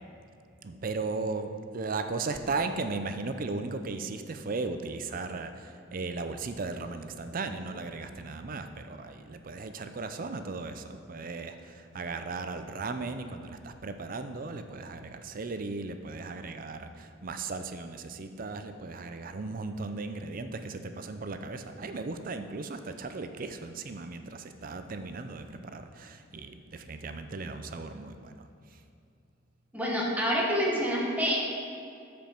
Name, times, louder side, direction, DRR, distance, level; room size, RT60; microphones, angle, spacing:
voice 1, 0.6-28.3, right 3 dB, 45° right, 8 dB, 0.5 m, -36 dB
voice 2, 29.7-31.4, equal, 10° right, -3 dB, 1.4 m, -27 dB
13.0 x 5.1 x 4.5 m, 2.5 s
head